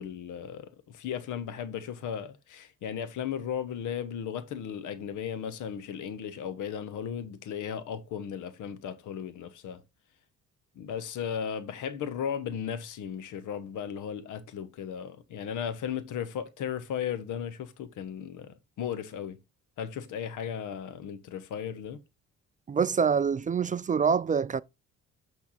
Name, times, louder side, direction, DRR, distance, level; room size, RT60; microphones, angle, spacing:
voice 1, 0.0-9.8 10.8-19.4 19.8-22.0, left 8 dB, 80° left, 1.1 m, -36 dB
voice 2, 22.7-24.6, right 6 dB, 25° right, 0.3 m, -25 dB
8.7 x 3.5 x 4.2 m
cardioid pair, 90°, 30 cm